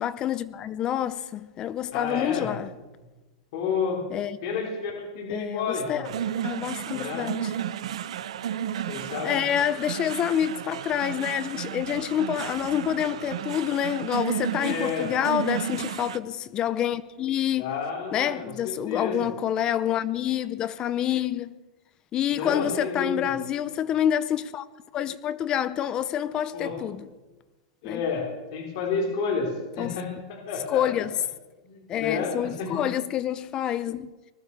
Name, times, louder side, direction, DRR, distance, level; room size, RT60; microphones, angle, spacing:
voice 1, 0.0-2.7 4.1-4.4 5.3-6.1 6.4-7.5 9.2-17.7 18.1-21.6 22.1-24.7 24.9-27.1 27.8-28.0 29.8-30.0 30.7-31.1 31.9-34.1, left 10 dB, 25° left, 0.5 m, -27 dB
voice 2, 1.9-2.6 3.5-4.0 4.4-6.1 6.9-7.3 8.9-9.4 14.6-15.1 17.6-19.3 22.3-23.2 26.5-26.8 27.8-30.8 31.6-32.9, left 5 dB, 50° left, 4.3 m, -30 dB
sound 1, 6.0-16.2, right 10 dB, 85° right, 0.8 m, -33 dB
20.0 x 14.0 x 4.8 m
supercardioid pair, 165°, 3 cm